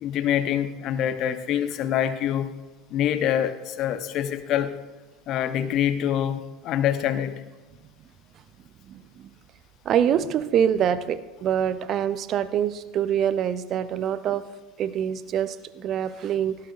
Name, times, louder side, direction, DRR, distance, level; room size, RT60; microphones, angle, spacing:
voice 1, 0.0-2.5 2.9-4.7 5.3-7.3, left 10 dB, 45° left, 10 dB, 0.9 m, -25 dB
voice 2, 8.9-9.3 9.8-14.4 14.8-16.6, right 9 dB, 40° right, 14 dB, 0.6 m, -25 dB
16.0 x 11.5 x 2.5 m, 1.2 s
figure-of-eight pair, 75°, 0 cm